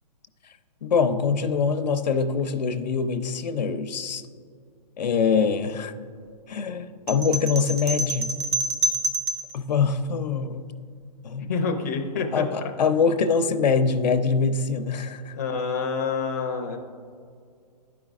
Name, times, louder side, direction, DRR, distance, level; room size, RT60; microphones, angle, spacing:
voice 1, 0.8-4.2 5.0-5.9 6.5-8.3 9.5-10.7 11.2-11.5 12.3-15.3, left 5 dB, 90° left, 9 dB, 0.6 m, -24 dB
sound 1, 7.1-9.5, right 2 dB, 40° right, 0.5 m, -27 dB
voice 2, 11.4-12.4 15.3-16.8, left 5 dB, 25° left, 1 dB, 0.4 m, -27 dB
12.0 x 5.1 x 2.4 m, 2.2 s
hypercardioid pair, 175°, 21 cm